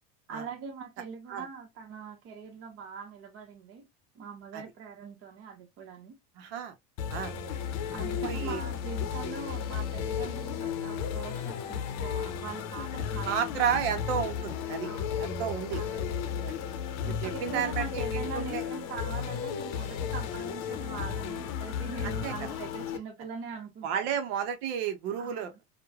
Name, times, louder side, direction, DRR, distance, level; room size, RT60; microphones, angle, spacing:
voice 1, 0.3-3.8 4.1-6.2 7.9-13.4 14.8-15.2 15.7-16.4 17.0-24.1 25.2-25.6, right 5 dB, 50° right, 1.0 m, -42 dB
voice 2, 6.4-6.7 7.1-7.3 8.2-8.6 13.2-14.9 15.2-15.8 16.4-16.6 17.1-18.6 22.0-22.3 23.8-25.5, right 8 dB, 80° right, 0.7 m, -32 dB
sound 1, 7.0-23.0, left 8 dB, 60° left, 0.6 m, -34 dB
3.0 x 2.2 x 2.3 m
supercardioid pair, 110°, 30 cm